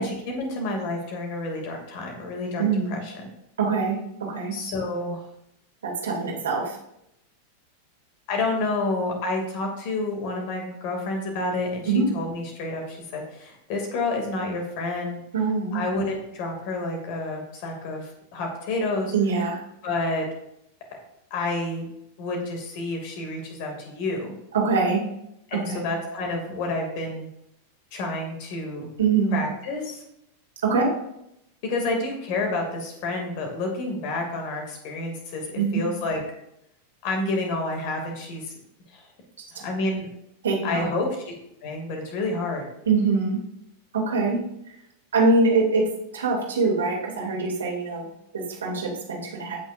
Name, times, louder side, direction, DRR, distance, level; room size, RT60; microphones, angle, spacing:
voice 1, 0.0-3.1 4.5-5.2 8.3-15.2 15.7-19.1 19.8-20.3 21.3-21.9 22.2-24.3 25.5-27.3 27.9-28.9 29.3-30.0 31.6-36.2 37.0-38.5 38.9-39.0 39.5-40.1 40.6-41.3 41.6-42.6, left 2 dB, 45° left, 2 dB, 2.6 m, -29 dB
voice 2, 2.6-3.0 3.6-4.0 4.3-4.5 5.8-6.7 11.9-12.1 15.3-15.8 19.1-19.6 24.5-25.0 25.5-25.8 29.0-29.3 30.6-30.9 35.6-35.8 40.4-40.9 42.9-43.4 43.9-44.4 45.1-45.9 46.1-48.1 48.3-49.6, right 4 dB, 65° right, -2 dB, 2.8 m, -23 dB
15.5 x 6.2 x 2.6 m, 0.79 s
figure-of-eight pair, 90°, 0 cm